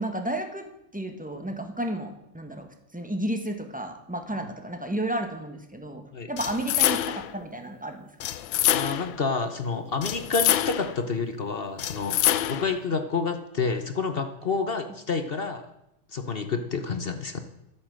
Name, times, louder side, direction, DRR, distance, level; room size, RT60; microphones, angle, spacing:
voice 1, 0.0-8.1, right 1 dB, 5° right, 6 dB, 1.1 m, -32 dB
sound 1, 6.4-7.3 8.2-9.2 10.0-11.0 11.8-12.8, left 12 dB, 70° left, 1.4 m, -26 dB
voice 2, 8.7-15.7 16.1-17.4, left 4 dB, 50° left, 8 dB, 0.7 m, -29 dB
13.0 x 9.0 x 7.6 m, 0.83 s
omnidirectional pair, 2.3 m